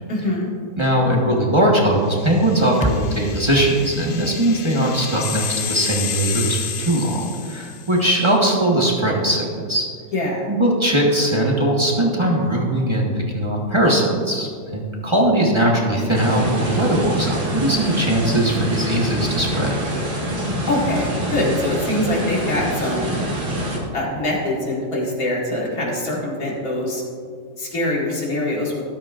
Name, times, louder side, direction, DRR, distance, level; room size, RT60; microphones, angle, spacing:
voice 1, 0.1-0.5 10.1-10.5 20.7-23.1 23.9-27.0 27.6-28.7, left 1 dB, 85° left, -3 dB, 2.6 m, -23 dB
voice 2, 0.8-9.9 10.5-19.7, right 1 dB, 20° right, -3 dB, 1.3 m, -20 dB
sound 1, 2.1-8.0, left 7 dB, 55° left, 0.6 m, -31 dB
sound 2, 2.8-7.1, left 1 dB, 10° left, 0.3 m, -32 dB
sound 3, 16.1-23.8, equal, 35° right, 2.0 m, -25 dB
13.0 x 12.5 x 2.5 m, 2.2 s
omnidirectional pair, 1.5 m